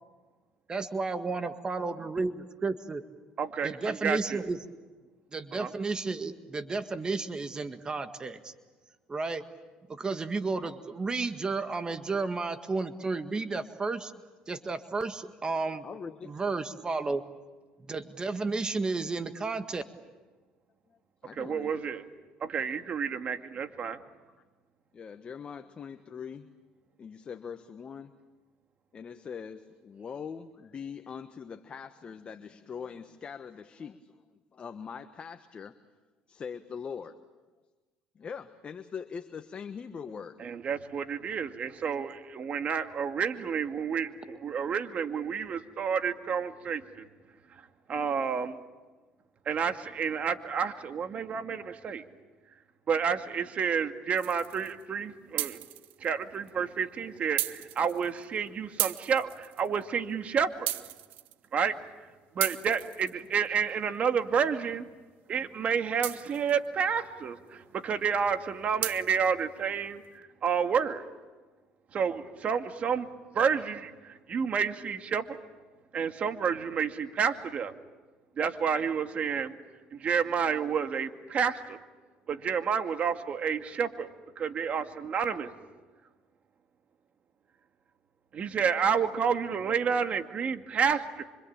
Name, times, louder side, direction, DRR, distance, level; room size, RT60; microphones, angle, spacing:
voice 1, 0.7-3.0 3.6-4.6 5.3-8.5 9.1-9.4 9.9-14.1 14.5-15.8 16.2-17.2 17.9-19.8, right 3 dB, 25° right, 9 dB, 1.8 m, -32 dB
voice 2, 3.4-4.4 5.5-5.7 21.3-22.0 22.4-24.0 40.4-47.1 47.5-48.6 49.5-52.1 52.9-55.6 56.0-60.7 61.5-61.8 62.3-64.9 65.3-71.1 71.9-73.1 73.3-75.4 75.9-77.7 78.4-79.5 79.9-81.8 82.3-84.1 84.4-85.5 88.3-91.2, right 6 dB, 45° right, 7 dB, 2.2 m, -30 dB
voice 3, 15.8-16.4 21.2-21.8 24.9-26.5 27.0-28.1 28.9-34.2 34.5-35.8 36.3-37.2 38.1-40.4, left 6 dB, 35° left, 8 dB, 1.4 m, -42 dB
sound 1, 54.2-54.8 55.4-56.1 56.5-56.6 57.4-58.4 58.8-59.8 60.7-61.6 62.4-63.6 66.0-66.7 68.8-69.3, right 14 dB, 70° right, 1.1 m, -35 dB
26.0 x 26.0 x 8.9 m, 1.3 s
supercardioid pair, 85°, 3 cm